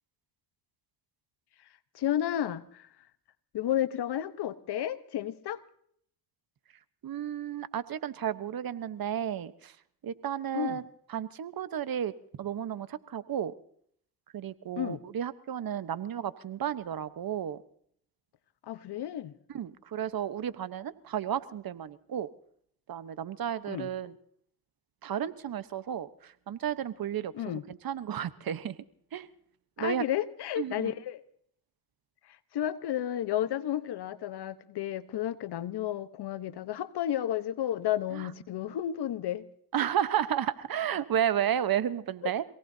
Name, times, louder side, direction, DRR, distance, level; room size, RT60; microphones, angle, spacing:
voice 1, 1.9-2.9 3.5-5.6 10.5-10.8 14.8-15.0 18.6-19.3 23.7-23.9 27.3-27.6 29.8-31.2 32.2-39.5, left 11 dB, 75° left, 1.1 m, -32 dB
voice 2, 7.0-9.8 10.0-10.8 11.1-13.5 14.3-17.6 19.5-22.3 22.9-24.1 25.0-27.3 27.7-28.8 29.1-29.3 29.8-30.0 30.6-30.9 38.1-38.3 39.7-42.4, right 9 dB, 60° right, 1.1 m, -32 dB
27.0 x 18.0 x 2.7 m
supercardioid pair, 60°, 40 cm